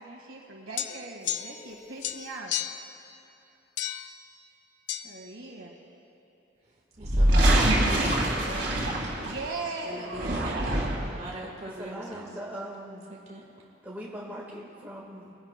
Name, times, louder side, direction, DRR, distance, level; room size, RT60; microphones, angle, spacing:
voice 1, 0.0-2.6 5.0-5.8 9.2-10.2, right 3 dB, 90° right, 0 dB, 1.8 m, -39 dB
sound 1, 0.8-1.7 2.0-2.9 3.8-4.1 4.9-5.0, left 11 dB, 65° left, 0.4 m, -33 dB
voice 2, 7.0-8.8 9.8-12.3 13.1-13.4, right 1 dB, 35° right, -2 dB, 1.4 m, -41 dB
sound 2, 7.0-9.6 10.0-11.2, right 1 dB, 60° right, 2.3 m, -24 dB
voice 3, 11.6-13.0 13.8-15.4, equal, 10° right, -4 dB, 1.5 m, -40 dB
25.0 x 10.5 x 2.2 m, 2.9 s
head